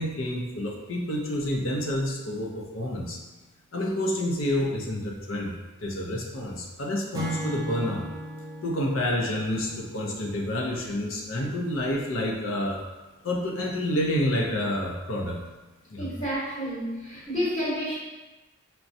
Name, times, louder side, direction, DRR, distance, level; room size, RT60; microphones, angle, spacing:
voice 1, 0.0-3.2 3.7-5.5 5.8-8.1 8.6-12.8 13.2-15.4 15.9-16.1, left 1 dB, 65° left, 0 dB, 0.6 m, -28 dB
Acoustic guitar / Strum, 7.1-10.6, equal, 20° right, 0.4 m, -37 dB
voice 2, 16.0-18.0, equal, 25° left, -9 dB, 1.1 m, -30 dB
6.0 x 2.2 x 2.6 m, 1.1 s
head